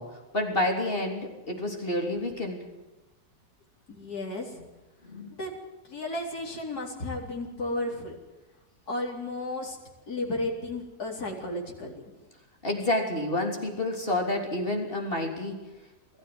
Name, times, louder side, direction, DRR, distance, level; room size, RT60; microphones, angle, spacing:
voice 1, 0.0-2.7 4.6-4.7 5.0-5.3 12.6-15.7, left 1 dB, 30° left, 2 dB, 3.7 m, -29 dB
voice 2, 3.9-4.6 5.4-5.5 5.8-8.2 8.9-9.8 10.1-12.0, left 2 dB, 55° left, -1 dB, 4.6 m, -33 dB
21.5 x 14.5 x 9.7 m, 1.1 s
omnidirectional pair, 1.9 m